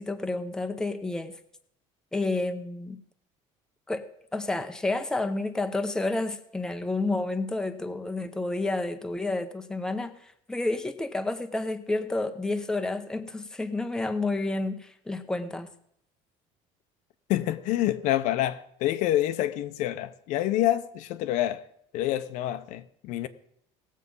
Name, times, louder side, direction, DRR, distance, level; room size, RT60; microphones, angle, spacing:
voice 1, 0.0-1.3 2.1-3.0 3.9-15.7, left 2 dB, 5° left, 0.8 m, -30 dB
voice 2, 17.3-21.6 21.9-23.3, left 13 dB, 70° left, 0.8 m, -27 dB
18.0 x 7.4 x 5.4 m
cardioid pair, 140°, 13 cm